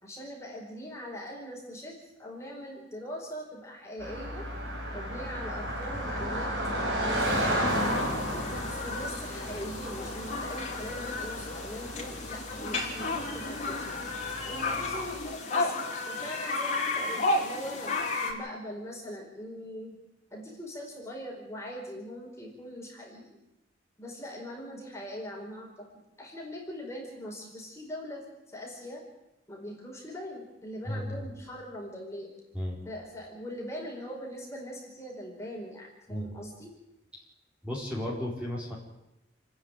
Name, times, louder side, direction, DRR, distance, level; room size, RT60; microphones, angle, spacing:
voice 1, 0.0-4.5 4.9-6.5 6.8-8.0 8.7-13.8 14.4-15.7 16.1-19.9 20.3-23.4 24.0-25.9 26.2-29.0 29.5-32.3 32.8-36.7, equal, 15° left, -2 dB, 4.6 m, -41 dB
Car passing by, 4.0-15.2, equal, 65° right, 6.2 m, -34 dB
sound 1, 7.7-18.3, left 2 dB, 40° left, 4.1 m, -33 dB
voice 2, 30.9-31.2 32.5-32.8 36.1-36.3 37.6-38.8, left 1 dB, 5° right, -4 dB, 4.5 m, -34 dB
29.5 x 10.0 x 9.0 m, 0.91 s
head